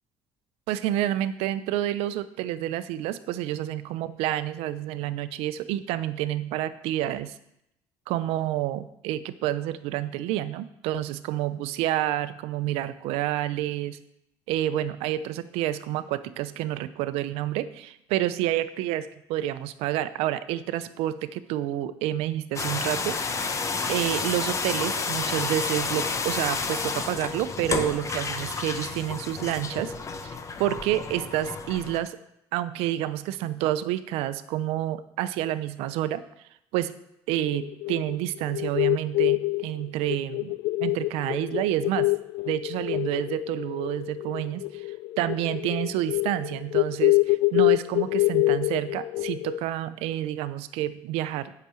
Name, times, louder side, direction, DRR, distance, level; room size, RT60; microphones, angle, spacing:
voice 1, 0.7-7.4 8.1-14.0 14.5-23.5 23.9-29.9 30.2-32.2 32.5-36.2 36.7-36.9 37.3-40.5 40.8-42.1 42.4-51.5, right 13 dB, 85° right, 14 dB, 0.6 m, -29 dB
sound 1, 22.6-32.0, left 4 dB, 30° left, 1.0 m, -30 dB
sound 2, 37.4-49.6, left 21 dB, 70° left, 0.4 m, -26 dB
8.3 x 6.0 x 7.6 m, 0.79 s
cardioid pair, 110°, 10 cm